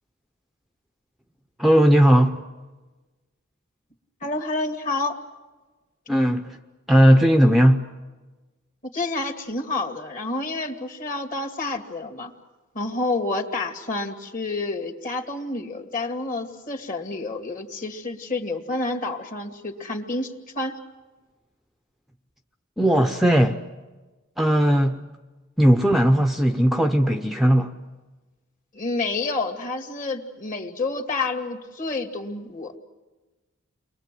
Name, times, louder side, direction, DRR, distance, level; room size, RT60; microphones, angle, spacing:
voice 1, 1.6-2.4 6.1-6.6 6.9-7.8 22.8-23.6 24.4-25.0 25.6-27.7, equal, ahead, 0.8 m, -17 dB
voice 2, 4.2-5.2 8.9-12.3 12.7-20.8 28.7-32.8, left 2 dB, 40° left, 2.3 m, -29 dB
30.0 x 22.5 x 7.7 m
head